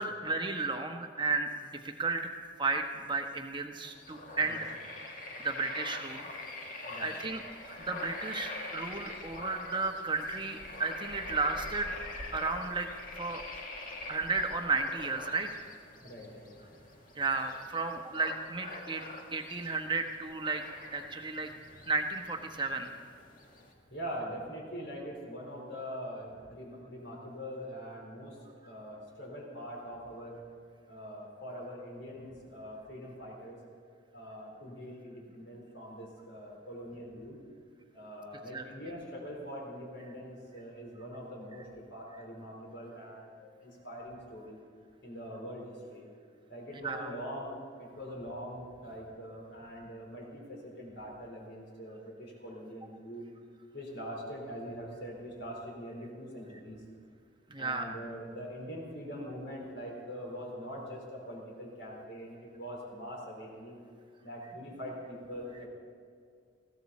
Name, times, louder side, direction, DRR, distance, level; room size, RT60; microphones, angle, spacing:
voice 1, 0.0-2.3 2.6-4.7 5.4-6.3 7.0-7.4 7.8-11.9 12.3-12.9 13.1-13.4 14.1-15.5 17.1-19.0 19.3-20.6 20.9-21.5 21.8-22.9 38.5-38.7 46.7-47.1 57.5-57.9, right 3 dB, 25° right, 4 dB, 1.0 m, -33 dB
sound 1, 3.8-23.7, left 2 dB, 45° left, 1.8 m, -45 dB
voice 2, 16.0-16.6 23.9-28.4 28.6-30.4 30.9-33.6 34.1-37.4 37.9-44.6 45.0-46.0 46.5-53.3 53.7-56.8 57.6-63.8 64.2-65.7, equal, 65° left, -2 dB, 4.2 m, -43 dB
20.0 x 15.5 x 4.2 m, 2.2 s
head